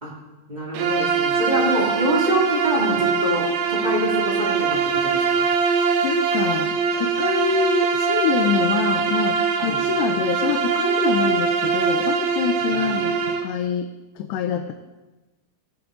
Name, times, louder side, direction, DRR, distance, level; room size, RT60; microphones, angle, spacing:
voice 1, 0.5-5.4 9.6-9.8, right 1 dB, 15° right, -4 dB, 1.6 m, -25 dB
Bowed string instrument, 0.7-13.5, right 6 dB, 75° right, 2.6 m, -22 dB
voice 2, 6.0-13.9 14.2-14.7, left 8 dB, 80° left, 5 dB, 2.8 m, -25 dB
19.0 x 7.2 x 4.9 m, 1.1 s
omnidirectional pair, 5.0 m